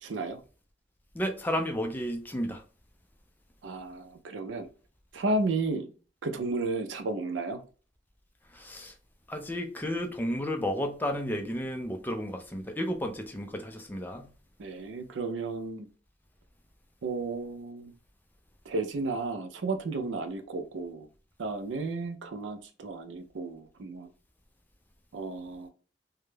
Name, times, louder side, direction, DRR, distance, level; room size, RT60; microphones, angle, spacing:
voice 1, 0.0-0.4 3.6-4.7 5.1-5.9 6.2-7.6 14.6-15.9 17.0-17.9 18.7-21.1 21.4-24.1 25.1-25.7, right 3 dB, 80° right, 0.5 m, -33 dB
voice 2, 1.1-2.6 8.5-8.9 9.3-14.3, equal, 10° left, 0.3 m, -32 dB
2.2 x 2.0 x 3.1 m
head